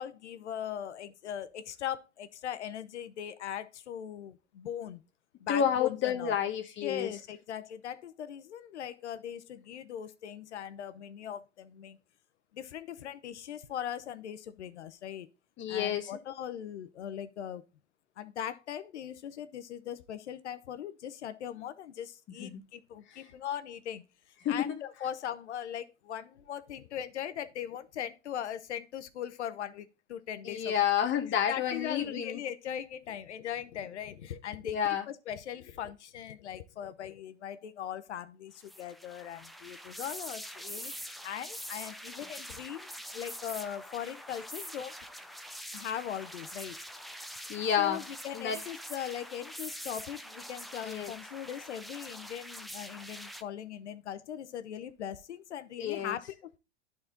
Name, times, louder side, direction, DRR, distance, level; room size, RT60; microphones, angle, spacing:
voice 1, 0.0-5.0 5.4-6.4 6.8-12.0 12.5-15.3 15.7-17.6 18.2-24.0 24.5-30.7 31.5-44.9 45.7-46.8 47.8-56.6, left 9 dB, 90° left, 0.9 m, -40 dB
voice 2, 5.5-7.1 15.6-16.1 22.4-22.6 23.1-23.3 24.4-24.7 30.4-32.4 34.6-35.0 47.5-48.0 48.3-48.6 50.8-51.1 55.8-56.2, left 9 dB, 35° left, 1.1 m, -30 dB
sound 1, 38.6-53.4, equal, ahead, 0.3 m, -44 dB
10.5 x 4.3 x 3.8 m
hypercardioid pair, 110°, 33 cm